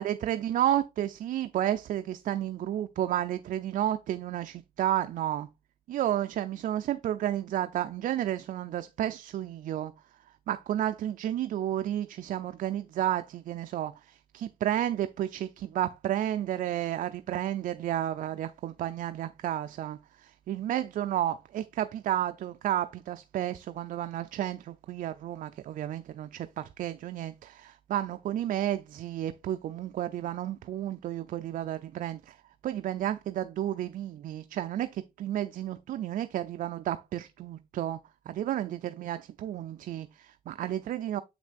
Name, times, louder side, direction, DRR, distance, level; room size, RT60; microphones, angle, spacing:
voice 1, 0.0-5.5 5.9-9.9 10.3-38.0 38.3-41.2, right 12 dB, 55° right, 0.5 m, -32 dB
7.5 x 6.0 x 2.4 m
cardioid pair, 110°, 17 cm